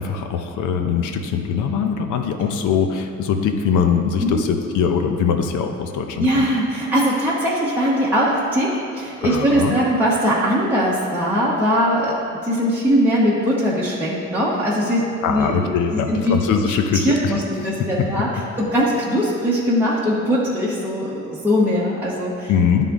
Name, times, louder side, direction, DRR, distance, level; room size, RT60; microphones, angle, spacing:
voice 1, 0.0-6.5 9.2-9.8 15.2-17.7 18.0-18.1 22.5-22.9, left 6 dB, 80° left, 6 dB, 0.6 m, -22 dB
voice 2, 6.2-15.6 15.9-16.3 16.9-18.3 18.6-22.5, equal, 5° right, -7 dB, 1.0 m, -20 dB
9.9 x 3.7 x 3.6 m, 2.5 s
cardioid pair, 90°, 30 cm